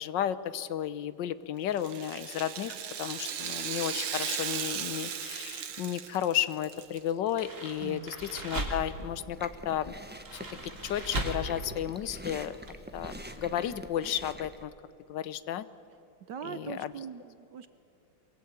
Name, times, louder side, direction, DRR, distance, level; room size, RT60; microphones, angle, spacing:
voice 1, 0.0-9.9 10.3-12.6 12.9-14.7 15.1-15.7 16.4-16.9, left 10 dB, 65° left, 15 dB, 1.4 m, -33 dB
Rattle (instrument), 1.7-7.0 7.3-7.4 8.2-8.3, right 8 dB, 85° right, 2.2 m, -36 dB
sound 1, 7.2-9.0 10.1-11.6 11.8-12.0 12.7-12.8 13.0-13.1, right 1 dB, 35° right, 3.1 m, -37 dB
Chewing mastication, 8.6-14.6, right 1 dB, 10° right, 0.7 m, -45 dB
voice 2, 16.3-17.7, right 8 dB, 65° right, 12 dB, 1.2 m, -41 dB
23.5 x 22.5 x 9.5 m, 2.6 s
omnidirectional pair, 2.4 m